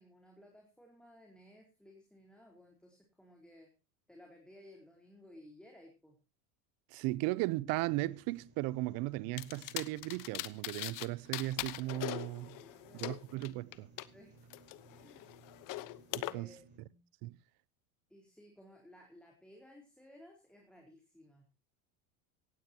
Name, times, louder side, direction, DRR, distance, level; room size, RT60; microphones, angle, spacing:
voice 1, 0.0-3.7 4.1-6.1 12.6-13.1 14.1-14.3 14.9-15.3 16.1-17.0 18.1-21.5, left 1 dB, ahead, 4.3 m, -58 dB
voice 2, 6.9-12.6 13.0-13.9 16.3-16.5 17.2-17.4, right 19 dB, 55° right, 0.8 m, -36 dB
sound 1, 7.8-16.8, right 3 dB, 25° right, 6.3 m, -61 dB
sound 2, 9.4-11.1 11.3-14.1 14.5-16.3, left 18 dB, 50° left, 1.1 m, -41 dB
17.5 x 15.5 x 2.9 m
supercardioid pair, 120°, 42 cm